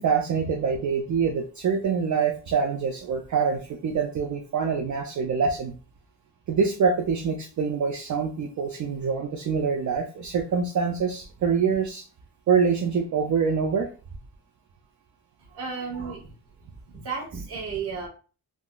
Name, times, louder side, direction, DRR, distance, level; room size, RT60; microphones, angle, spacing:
voice 1, 0.0-5.7 6.5-12.0 12.5-13.9, right 6 dB, 45° right, 2 dB, 0.4 m, -25 dB
voice 2, 15.4-16.3 16.9-18.1, right 5 dB, 65° right, -5 dB, 1.3 m, -33 dB
3.6 x 2.4 x 2.2 m, 0.36 s
cardioid pair, 120°, 41 cm